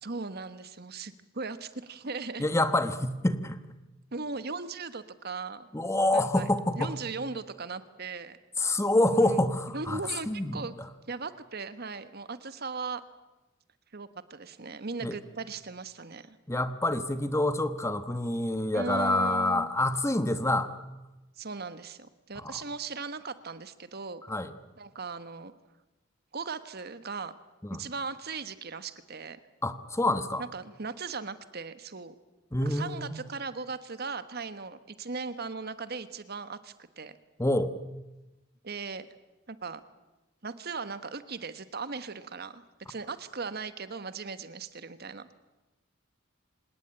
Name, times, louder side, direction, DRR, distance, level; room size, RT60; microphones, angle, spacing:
voice 1, 0.0-2.5 4.1-5.7 6.1-6.5 6.8-8.4 9.1-9.4 9.7-10.7 11.1-13.0 13.9-16.4 18.7-19.7 21.4-24.2 24.8-25.5 26.3-27.3 27.8-29.4 30.4-32.1 32.6-37.2 38.6-39.0 39.5-39.8 40.4-45.3, right 4 dB, 50° right, 12 dB, 1.3 m, -38 dB
voice 2, 2.4-3.6 5.7-6.9 8.6-10.0 10.3-10.6 15.0-15.2 16.5-20.7 22.4-22.5 24.3-24.5 27.6-27.8 29.6-30.4 32.5-33.1 37.4-37.7, left 1 dB, 15° left, 11 dB, 1.2 m, -27 dB
26.0 x 18.5 x 9.0 m, 1.1 s
head